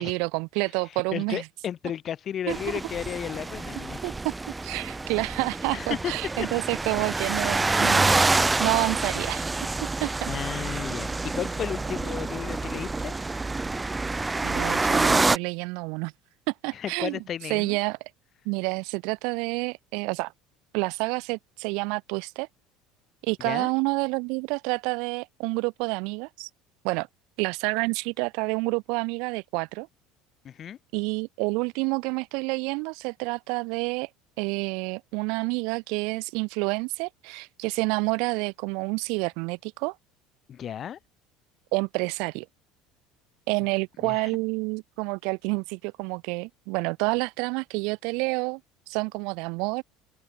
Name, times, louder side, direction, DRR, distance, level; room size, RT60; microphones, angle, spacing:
voice 1, 0.0-1.4 2.5-2.6 4.0-4.3 4.6-8.1 8.6-9.5 9.8-10.3 14.4-16.1 16.5-17.2 17.5-18.0 18.5-20.3 20.7-22.5 23.2-26.5 26.8-27.1 27.4-29.9 30.9-34.1 34.4-40.0 41.7-42.5 43.5-48.6 48.9-49.8, right 30 dB, 65° right, 0.3 m, -28 dB
voice 2, 0.8-4.1 5.7-6.5 10.3-13.1 16.7-17.8 23.4-23.7 30.4-30.8 40.5-41.0 43.6-43.7 44.0-44.3, left 9 dB, 45° left, 1.7 m, -34 dB
sound 1, 2.5-15.4, right 3 dB, 15° right, 0.8 m, -27 dB
open air
hypercardioid pair, 70°, 0 cm